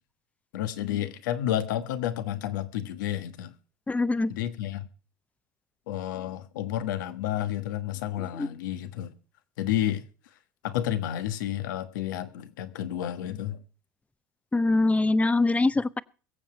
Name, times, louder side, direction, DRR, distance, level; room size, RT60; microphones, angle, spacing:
voice 1, 0.5-3.5 4.3-4.9 5.9-9.1 9.6-10.1 10.6-13.6, left 12 dB, 85° left, 1.4 m, -31 dB
voice 2, 3.9-4.3 8.2-8.5 14.5-16.0, left 2 dB, 15° left, 0.7 m, -24 dB
22.5 x 7.7 x 4.5 m
hypercardioid pair, 85°, 10 cm